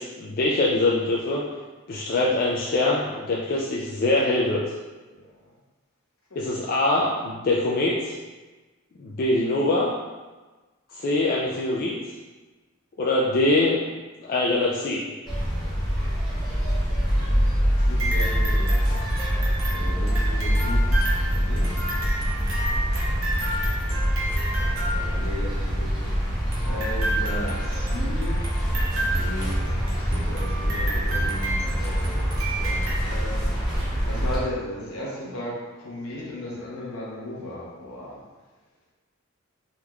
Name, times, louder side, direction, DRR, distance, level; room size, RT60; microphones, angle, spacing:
voice 1, 0.0-1.4 1.9-4.6 6.4-8.1 9.0-9.9 10.9-12.0 13.0-13.8 14.2-15.1, left 2 dB, 40° left, -4 dB, 0.3 m, -23 dB
sound 1, 15.3-34.4, equal, ahead, 1.0 m, -25 dB
voice 2, 17.0-18.8 19.7-21.9 23.4-26.2 26.6-28.5 29.0-33.6 34.0-38.2, left 1 dB, 75° left, -5 dB, 0.9 m, -36 dB
sound 2, 17.7-25.6 26.5-32.9, right 1 dB, 65° right, 0.8 m, -32 dB
3.5 x 3.0 x 2.3 m, 1.2 s
head